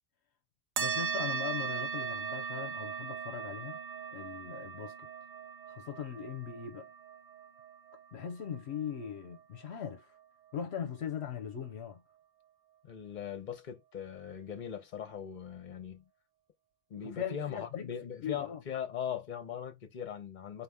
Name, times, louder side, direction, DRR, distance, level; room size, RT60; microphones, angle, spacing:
voice 1, 0.8-3.8 4.1-5.1 5.7-6.9 8.1-10.1 10.5-12.0 17.0-17.9 18.2-18.6, left 8 dB, 70° left, 0.9 m, -40 dB
sound 1, 0.8-9.7, right 7 dB, 55° right, 0.4 m, -39 dB
voice 2, 12.8-16.1 16.9-20.6, left 8 dB, 45° left, 0.9 m, -40 dB
4.1 x 2.7 x 3.5 m
omnidirectional pair, 1.2 m